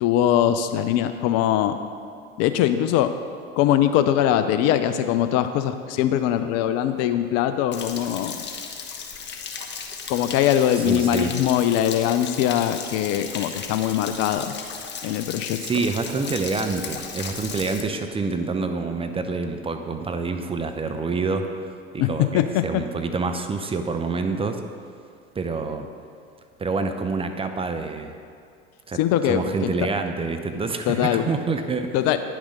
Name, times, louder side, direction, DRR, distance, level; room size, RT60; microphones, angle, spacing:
voice 1, 0.0-1.7 2.4-3.1 3.6-8.4 10.1-14.5 15.0-15.6 22.0-22.1 22.3-22.8 29.0-29.7 30.9-31.3 31.9-32.2, left 11 dB, 50° left, 10 dB, 0.6 m, -22 dB
Stream / Splash splatter / Trickle dribble, 7.7-17.8, left 6 dB, 35° left, 1.1 m, -35 dB
voice 2, 10.7-11.3 15.6-21.5 21.9-24.6 25.4-25.9 26.6-28.1 28.9-29.0 29.2-31.9, right 4 dB, 15° right, 6 dB, 0.6 m, -27 dB
9.9 x 6.2 x 5.1 m, 2.2 s
hypercardioid pair, 80°, 33 cm